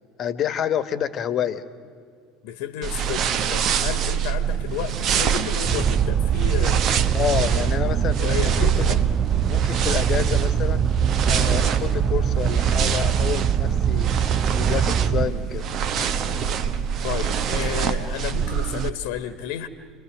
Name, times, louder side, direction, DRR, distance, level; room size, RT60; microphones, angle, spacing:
voice 1, 0.2-1.6 7.1-8.8 9.5-10.9 11.3-14.1 14.6-15.7, left 9 dB, 45° left, 13 dB, 1.3 m, -28 dB
voice 2, 2.4-6.9 7.4-7.6 8.2-9.0 17.0-19.7, left 10 dB, 65° left, 11 dB, 1.2 m, -32 dB
sound 1, 2.8-18.9, right 7 dB, 50° right, 1.1 m, -25 dB
sound 2, 5.7-15.3, right 8 dB, 35° right, 0.6 m, -23 dB
29.5 x 21.5 x 6.1 m, 2.2 s
hypercardioid pair, 70°, 0 cm